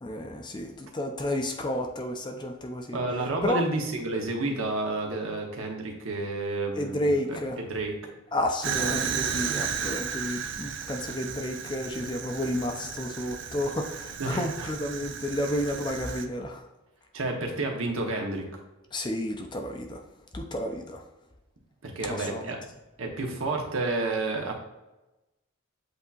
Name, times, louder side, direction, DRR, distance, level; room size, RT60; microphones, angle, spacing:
voice 1, 0.0-3.0 3.4-3.6 6.8-7.6 8.3-16.6 18.9-20.0 20.3-21.0 22.0-22.4, left 1 dB, 20° left, 3 dB, 0.4 m, -31 dB
voice 2, 2.9-8.0 14.2-14.7 17.1-18.4 21.8-22.6 23.0-24.5, right 2 dB, 70° right, 1 dB, 0.9 m, -30 dB
Fire, 8.6-16.3, right 7 dB, 55° right, 0.4 m, -34 dB
8.0 x 2.7 x 2.4 m, 1.0 s
head